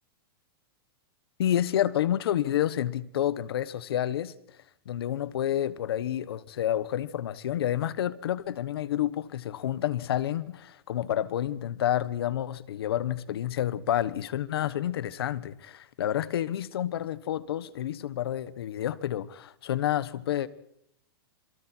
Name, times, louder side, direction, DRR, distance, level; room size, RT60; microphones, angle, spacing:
voice 1, 1.4-4.3 4.8-20.5, left 11 dB, 80° left, 1.3 m, -29 dB
27.5 x 23.0 x 4.6 m
supercardioid pair, 155°, 13 cm